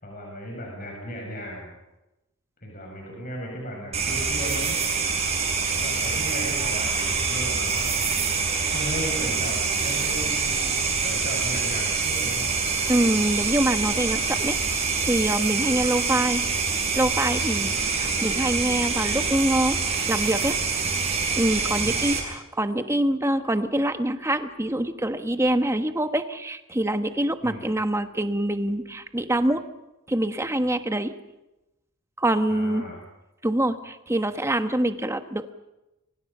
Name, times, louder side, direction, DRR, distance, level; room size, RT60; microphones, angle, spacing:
voice 1, 0.0-1.7 2.6-4.8 5.7-8.2 8.7-12.5 18.1-18.5 21.8-22.1 27.4-27.7 32.5-33.0, equal, 40° left, 0 dB, 6.9 m, -36 dB
sound 1, 3.9-22.2, right 5 dB, 30° right, 7.2 m, -25 dB
voice 2, 12.9-14.6 15.0-16.4 16.9-19.8 20.1-20.6 21.3-29.6 30.1-31.1 32.2-32.8 33.4-35.5, right 1 dB, 15° right, 8 dB, 1.3 m, -25 dB
29.5 x 24.0 x 5.6 m, 0.97 s
head